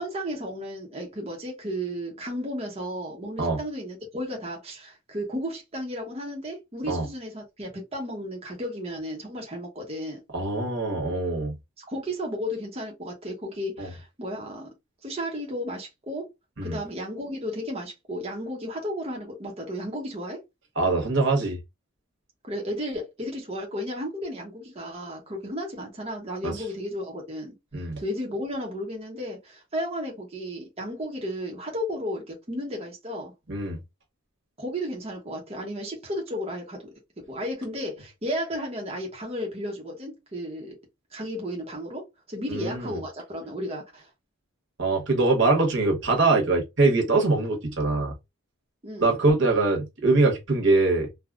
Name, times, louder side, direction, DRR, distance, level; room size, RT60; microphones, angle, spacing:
voice 1, 0.0-10.2 11.8-14.7 15.0-16.3 16.6-20.4 22.4-33.3 34.6-36.9 37.3-40.8 41.1-42.0 42.3-44.1 48.8-49.1, equal, 30° right, 0.8 m, -33 dB
voice 2, 10.3-11.5 13.8-13.9 16.6-16.8 20.8-21.6 26.4-26.5 27.7-28.0 33.5-33.8 42.5-42.9 44.8-48.1 49.0-51.1, right 3 dB, 55° right, 1.1 m, -23 dB
3.5 x 2.2 x 2.4 m
head